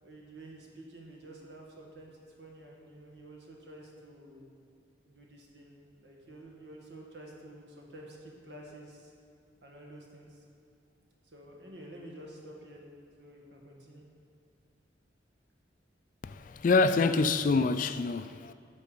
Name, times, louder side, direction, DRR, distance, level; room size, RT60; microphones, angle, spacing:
voice 1, 0.0-4.5 5.1-9.1 9.6-10.4 11.3-12.8 13.2-14.1, right 1 dB, 70° right, 1.8 m, -50 dB
voice 2, 16.2-18.5, left 3 dB, 45° left, 0.3 m, -26 dB
11.5 x 6.9 x 5.1 m
head